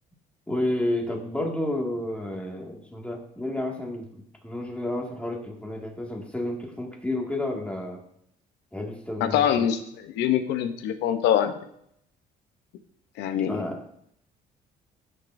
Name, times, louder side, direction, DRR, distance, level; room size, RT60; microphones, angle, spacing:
voice 1, 0.5-8.0 8.7-9.7 13.3-13.8, left 1 dB, 5° left, 0 dB, 2.0 m, -31 dB
voice 2, 9.2-11.5 13.2-13.6, left 9 dB, 85° left, 9 dB, 0.8 m, -24 dB
15.0 x 6.7 x 2.6 m, 0.71 s
cardioid pair, 110°, 17 cm